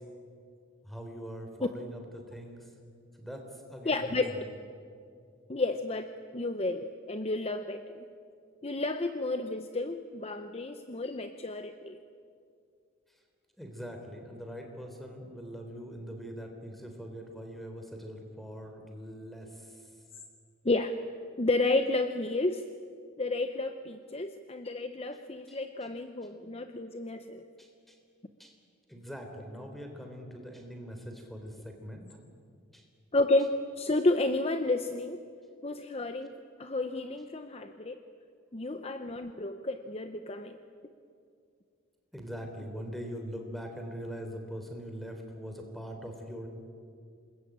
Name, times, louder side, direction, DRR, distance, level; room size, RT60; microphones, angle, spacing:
voice 1, 0.8-2.7 3.2-4.4 13.1-13.2 13.6-19.9 25.5-25.6 27.6-28.0 28.4-28.5 28.9-32.0 32.7-32.8 42.1-46.5, equal, ahead, 4 dB, 3.6 m, -42 dB
voice 2, 3.9-4.4 5.5-8.0 8.6-12.0 20.6-20.9 21.4-22.6 23.2-27.4 33.1-35.2 35.6-38.0 38.5-40.6, left 2 dB, 30° left, 8 dB, 0.8 m, -31 dB
27.5 x 21.0 x 8.9 m, 2.3 s
head